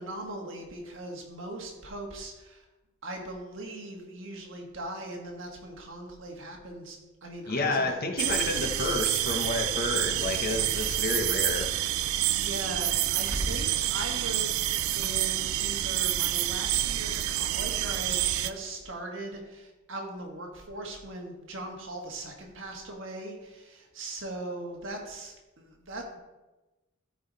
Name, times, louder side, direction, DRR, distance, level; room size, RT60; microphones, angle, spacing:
voice 1, 0.0-2.7 3.0-7.9 12.1-26.2, right 1 dB, 60° right, 1 dB, 1.6 m, -39 dB
voice 2, 7.5-11.7, left 3 dB, 45° left, 4 dB, 1.0 m, -30 dB
sound 1, 8.2-18.5, right 13 dB, 80° right, 0.4 m, -28 dB
13.0 x 4.8 x 4.0 m, 1.1 s
head